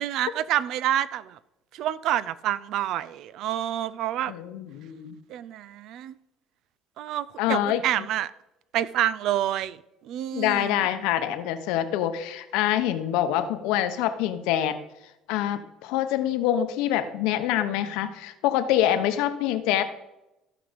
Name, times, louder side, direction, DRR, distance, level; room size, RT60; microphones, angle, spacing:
voice 1, 0.0-1.4 1.7-4.3 5.3-6.1 7.0-8.3 8.7-10.8, right 12 dB, 65° right, 18 dB, 0.5 m, -28 dB
voice 2, 4.3-5.2 7.4-7.8 10.3-14.8 15.3-19.9, left 11 dB, 85° left, 9 dB, 0.9 m, -25 dB
14.0 x 5.1 x 5.2 m, 0.91 s
cardioid pair, 110°, 0 cm